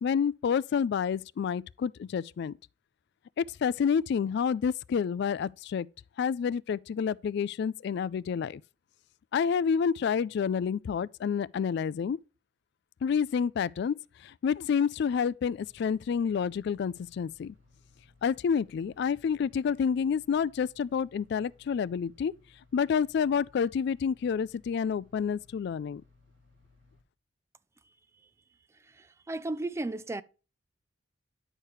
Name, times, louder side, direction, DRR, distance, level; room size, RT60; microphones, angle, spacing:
voice 1, 0.0-2.6 3.4-5.9 6.2-8.6 9.3-12.2 13.0-13.9 14.2-17.5 18.2-22.3 22.7-26.0, left 6 dB, 60° left, 0.3 m, -29 dB
sound 1, 15.5-27.0, left 3 dB, 85° right, 1.8 m, -62 dB
voice 2, 28.9-30.2, right 2 dB, 15° right, 0.4 m, -34 dB
10.0 x 6.5 x 3.0 m
head